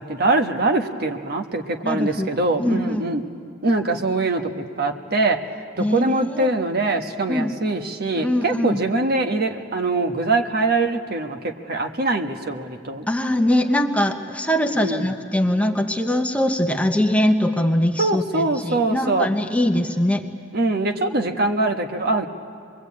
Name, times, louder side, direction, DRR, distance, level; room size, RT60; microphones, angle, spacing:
voice 1, 0.0-3.2 3.6-5.4 5.8-13.0 14.6-15.1 18.0-19.3 20.5-22.3, right 2 dB, 55° right, 4 dB, 1.3 m, -23 dB
voice 2, 1.8-2.3 2.6-3.1 5.8-6.5 7.3-7.5 8.2-8.8 13.1-20.2, left 1 dB, 5° left, 4 dB, 1.0 m, -22 dB
25.5 x 22.0 x 8.5 m, 2.3 s
head